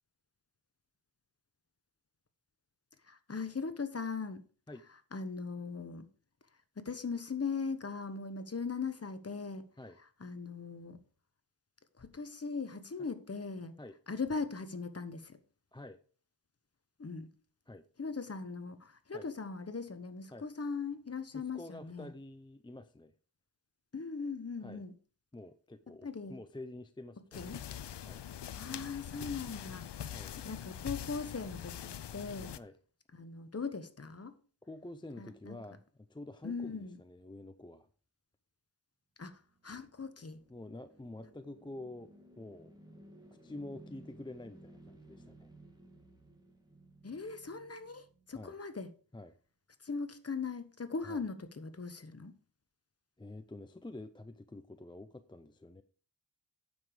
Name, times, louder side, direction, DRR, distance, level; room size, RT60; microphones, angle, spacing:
voice 1, 3.0-4.4 5.1-6.1 6.8-9.7 10.2-11.0 11.9-13.8 14.1-15.4 17.0-17.3 18.0-22.1 23.9-24.9 25.9-26.4 27.3-27.6 28.5-30.1 30.4-32.6 33.1-34.3 35.2-35.6 36.4-37.0 39.2-40.4 47.0-48.9 49.8-52.4, left 4 dB, 30° left, 10 dB, 1.2 m, -39 dB
voice 2, 21.3-23.1 24.6-24.8 25.3-27.5 28.0-28.2 30.1-30.3 32.6-32.7 34.6-37.9 40.5-42.7 43.4-45.5 48.3-48.6 49.1-49.3 51.1-51.2 53.2-55.8, left 2 dB, 10° left, 10 dB, 0.5 m, -48 dB
sound 1, 27.3-32.6, left 10 dB, 65° left, 0.7 m, -43 dB
sound 2, 39.4-48.7, right 1 dB, 10° right, 2.3 m, -58 dB
9.5 x 7.1 x 4.8 m, 0.41 s
wide cardioid pair, 105°, 45 cm